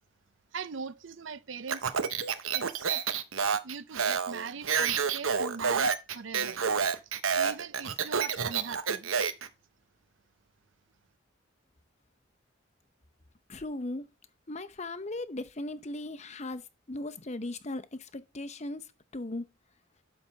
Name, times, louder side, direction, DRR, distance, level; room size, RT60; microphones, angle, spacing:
voice 1, 0.5-1.9 2.5-3.0 3.6-6.6 7.4-9.1, right 5 dB, 70° right, 0.6 m, -41 dB
Speech, 1.7-9.5, right 6 dB, 85° right, 1.0 m, -29 dB
voice 2, 13.5-14.1 14.5-18.8 19.1-19.5, left 2 dB, 35° left, 0.8 m, -37 dB
12.0 x 4.1 x 5.6 m
head